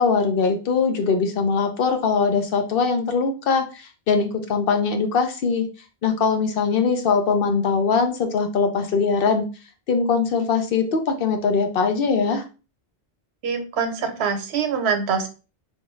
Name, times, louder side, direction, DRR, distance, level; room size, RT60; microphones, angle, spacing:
voice 1, 0.0-5.7 6.0-9.4 9.9-12.4, left 5 dB, 65° left, 6 dB, 0.8 m, -21 dB
voice 2, 13.4-15.3, right 6 dB, 80° right, 8 dB, 0.9 m, -24 dB
3.5 x 2.6 x 3.0 m, 0.33 s
omnidirectional pair, 1.1 m